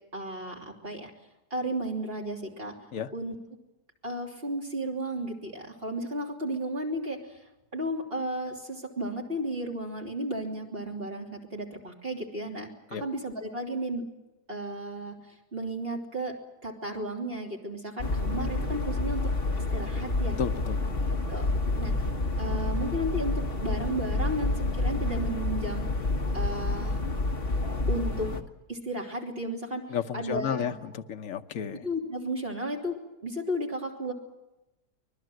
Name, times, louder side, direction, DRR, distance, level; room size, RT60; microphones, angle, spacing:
voice 1, 0.1-1.1 1.5-2.7 3.1-3.4 4.0-7.4 7.7-14.0 14.5-15.1 15.5-16.3 16.6-19.3 19.7-20.4 21.3-21.9 22.4-25.8 26.3-27.0 27.9-28.3 28.7-29.8 30.1-30.8 31.8-34.1, right 1 dB, 35° right, 0 dB, 3.3 m, -33 dB
sound 1, 18.0-28.4, left 2 dB, 40° left, 1.6 m, -29 dB
voice 2, 20.4-21.0 29.9-31.9, left 8 dB, 60° left, 6 dB, 1.3 m, -32 dB
25.0 x 20.5 x 7.8 m, 1.0 s
omnidirectional pair, 1.7 m